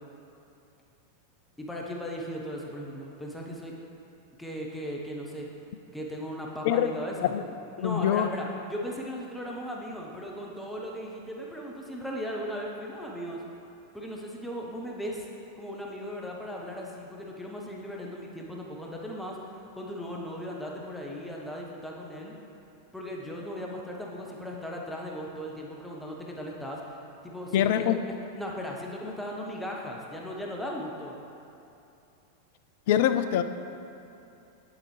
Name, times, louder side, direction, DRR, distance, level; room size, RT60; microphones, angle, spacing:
voice 1, 1.6-3.7 4.4-5.5 5.9-7.3 7.8-13.4 13.9-15.3 15.6-22.3 22.9-31.1, equal, 5° left, -2 dB, 0.8 m, -37 dB
voice 2, 7.8-8.3 27.5-28.0 32.9-33.4, left 10 dB, 50° left, 10 dB, 0.3 m, -24 dB
8.8 x 7.3 x 3.2 m, 2.8 s
figure-of-eight pair, 90°, 0 cm